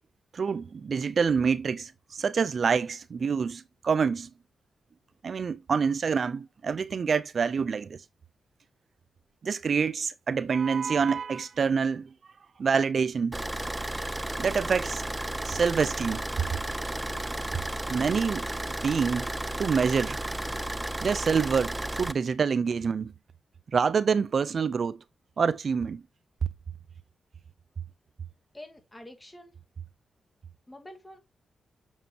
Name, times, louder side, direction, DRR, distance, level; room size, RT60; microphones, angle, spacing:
voice 1, 0.3-4.3 5.2-8.0 9.4-12.1 12.6-13.4 14.4-15.0 15.4-16.2 17.9-18.4 18.8-19.3 19.6-20.2 21.0-23.1 23.7-25.0 25.4-26.0, right 6 dB, 55° right, 0.5 m, -26 dB
Car / Idling, 13.3-22.1, right 1 dB, 15° right, 0.6 m, -33 dB
voice 2, 28.5-29.6 30.7-31.2, left 1 dB, 15° left, 2.1 m, -47 dB
7.2 x 6.8 x 2.8 m
cardioid pair, 85°, 0 cm